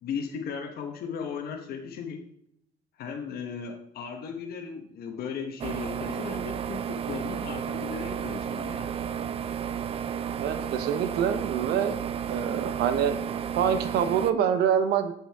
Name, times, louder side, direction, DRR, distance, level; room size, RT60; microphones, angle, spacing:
voice 1, 0.0-2.3 3.0-9.0, left 6 dB, 65° left, 3 dB, 1.1 m, -36 dB
sound 1, 5.6-14.3, right 8 dB, 35° right, 0.4 m, -32 dB
voice 2, 10.4-12.0 12.3-15.1, right 8 dB, 75° right, 9 dB, 0.9 m, -26 dB
7.5 x 7.3 x 3.5 m, 0.75 s
cardioid pair, 110°, 17 cm